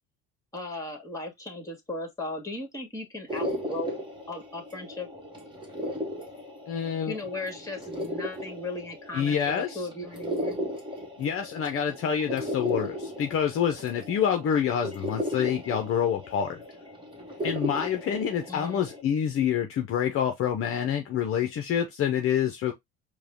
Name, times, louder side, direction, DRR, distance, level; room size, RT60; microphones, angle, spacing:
voice 1, 0.5-5.1 7.1-10.6 18.5-18.8, left 2 dB, 10° left, 1.9 m, -37 dB
sound 1, 3.3-19.0, equal, 15° right, 1.6 m, -36 dB
voice 2, 6.7-7.2 9.1-9.8 11.2-16.6 17.4-22.7, left 8 dB, 45° left, 0.8 m, -27 dB
4.7 x 2.4 x 3.5 m
supercardioid pair, 95°, 31 cm